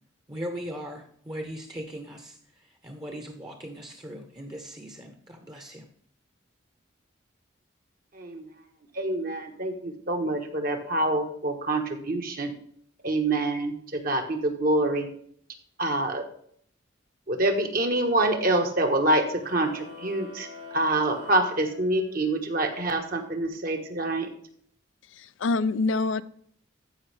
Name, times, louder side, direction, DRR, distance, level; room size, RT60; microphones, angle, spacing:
voice 1, 0.3-5.8, equal, 20° right, 4 dB, 1.0 m, -39 dB
voice 2, 8.1-8.5 8.9-12.5 13.0-15.1 15.8-16.2 17.3-20.5 20.7-24.3, right 2 dB, 45° right, 4 dB, 1.4 m, -26 dB
sound 1, 19.4-22.4, left 4 dB, 70° right, 3.9 m, -44 dB
voice 3, 25.1-26.2, left 3 dB, 70° left, 16 dB, 0.5 m, -26 dB
13.5 x 5.4 x 3.4 m, 0.63 s
head